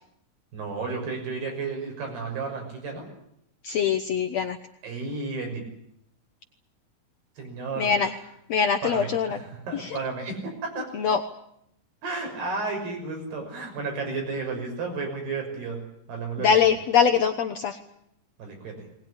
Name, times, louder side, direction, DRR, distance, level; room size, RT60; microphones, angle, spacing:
voice 1, 0.5-3.1 4.8-5.6 7.4-7.9 8.8-10.9 12.0-15.8 16.1-16.7 18.4-18.8, right 4 dB, 80° right, 3 dB, 8.1 m, -32 dB
voice 2, 3.6-4.6 7.8-8.1 8.5-9.4 9.7-10.0 10.9-11.2 16.4-17.8, left 7 dB, 80° left, 7 dB, 1.5 m, -23 dB
20.5 x 20.5 x 10.0 m, 0.75 s
omnidirectional pair, 4.5 m